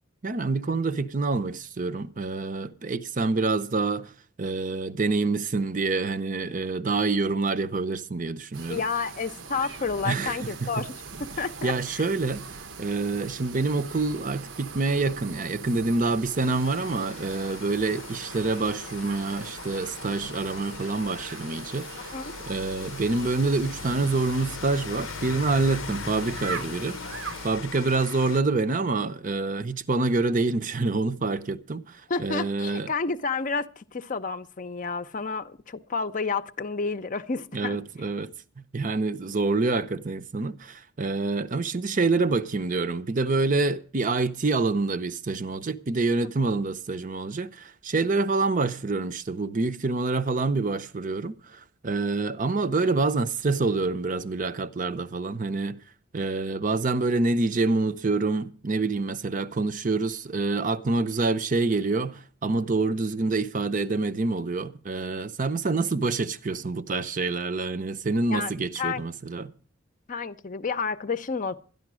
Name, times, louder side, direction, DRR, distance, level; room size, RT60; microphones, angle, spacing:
voice 1, 0.2-4.1 4.4-8.8 10.0-10.8 11.6-12.5 12.8-22.1 22.5-27.0 27.4-32.9 37.5-55.8 56.1-69.5, right 3 dB, 40° right, 0.7 m, -27 dB
sound 1, 8.5-27.5, right 5 dB, 75° right, 1.0 m, -42 dB
voice 2, 8.7-10.9 11.2-12.1 22.0-22.3 32.1-37.8 46.2-46.3 68.3-68.5 68.8-69.1 70.1-71.6, left 4 dB, 40° left, 0.6 m, -30 dB
Rain, 16.4-28.4, left 6 dB, 80° left, 0.6 m, -40 dB
12.5 x 11.0 x 6.1 m
head